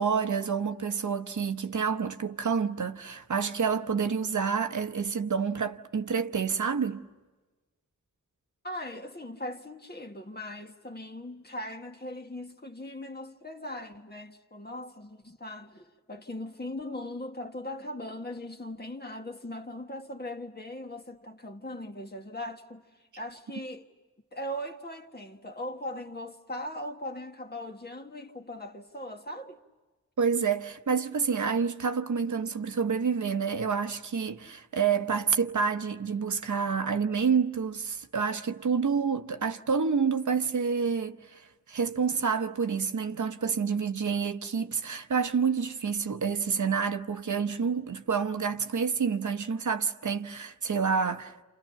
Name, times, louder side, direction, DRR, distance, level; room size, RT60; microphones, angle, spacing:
voice 1, 0.0-7.0 30.2-51.3, right 6 dB, 70° right, 0.9 m, -28 dB
voice 2, 8.6-22.8 23.2-23.9 24.3-29.6, left 1 dB, 30° left, 1.6 m, -39 dB
30.0 x 28.5 x 5.8 m
wide cardioid pair, 85°, 31 cm